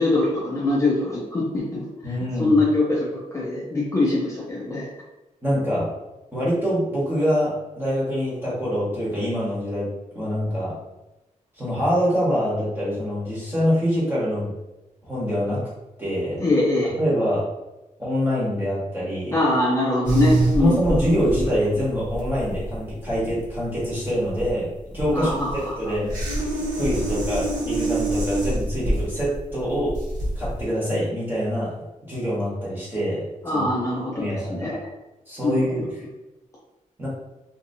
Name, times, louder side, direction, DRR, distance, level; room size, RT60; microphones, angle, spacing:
voice 1, 0.0-1.9 2.4-4.9 16.4-16.9 19.3-21.0 25.1-25.9 33.4-34.3 34.6-34.8 35.4-35.8, left 2 dB, 20° left, -6 dB, 0.5 m, -23 dB
voice 2, 2.0-2.6 5.4-5.9 6.3-9.9 10.1-10.8 11.6-14.5 15.0-15.7 16.0-16.4 16.8-17.5 18.0-19.3 20.6-26.2 26.7-30.0 30.3-31.7 32.0-33.6 34.1-34.8 35.3-35.9 37.0-37.1, equal, 15° right, -8 dB, 1.2 m, -25 dB
sound 1, 20.0-30.6, right 1 dB, 75° right, 1.0 m, -26 dB
2.7 x 2.6 x 2.6 m, 1.0 s
wide cardioid pair, 165°, 14 cm